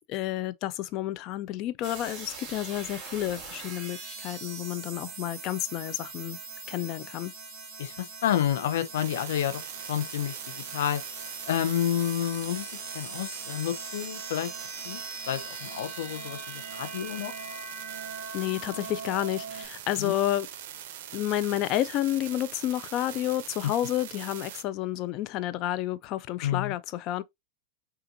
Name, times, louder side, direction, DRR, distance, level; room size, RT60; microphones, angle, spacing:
voice 1, 0.1-6.4 6.7-7.3 18.3-20.5 21.1-27.2, left 14 dB, 45° left, 0.4 m, -30 dB
sound 1, 1.8-19.7, right 3 dB, 30° right, 2.1 m, -41 dB
voice 2, 7.8-9.6 9.9-11.0 11.4-12.7 12.9-14.5 14.8-15.0 15.3-17.3 20.0-20.1 23.6-23.7 26.4-26.7, left 10 dB, 70° left, 0.8 m, -29 dB
sound 2, 9.0-24.6, right 11 dB, 65° right, 0.6 m, -42 dB
5.7 x 2.5 x 2.6 m
hypercardioid pair, 115°, 0 cm